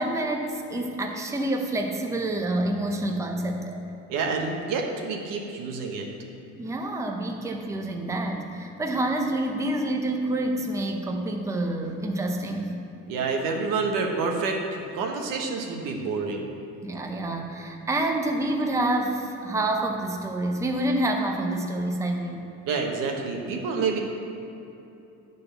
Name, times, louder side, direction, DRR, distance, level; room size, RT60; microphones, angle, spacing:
voice 1, 0.0-3.8 6.6-12.8 16.8-22.5, right 1 dB, 10° right, 2 dB, 0.6 m, -28 dB
voice 2, 4.1-6.1 13.1-16.4 22.7-24.0, right 4 dB, 90° right, 1 dB, 1.2 m, -28 dB
8.9 x 4.1 x 6.7 m, 2.9 s
cardioid pair, 130°, 32 cm